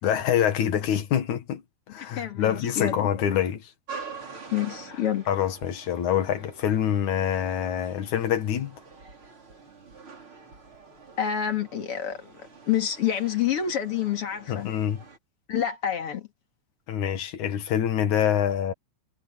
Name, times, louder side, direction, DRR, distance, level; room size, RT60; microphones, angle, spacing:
voice 1, 0.0-1.6 1.9-3.7 5.3-8.8 14.5-15.0 16.9-18.7, left 9 dB, 75° left, 3.0 m, -25 dB
voice 2, 1.9-3.1 4.5-5.3 11.2-12.2 12.7-14.7 15.5-16.3, left 9 dB, 50° left, 2.9 m, -27 dB
sound 1, 3.9-15.2, right 5 dB, 40° right, 5.2 m, -46 dB
omnidirectional pair, 3.5 m